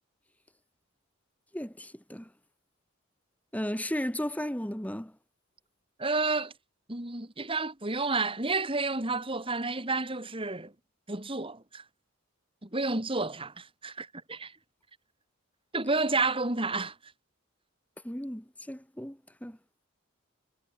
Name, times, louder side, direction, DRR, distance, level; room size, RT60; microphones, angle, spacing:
voice 1, 1.5-2.3 3.5-5.1 18.0-19.6, equal, 5° left, 2.1 m, -35 dB
voice 2, 6.0-6.5 6.9-10.7 11.1-11.8 12.6-14.5 15.7-16.9, right 3 dB, 25° right, 2.8 m, -30 dB
head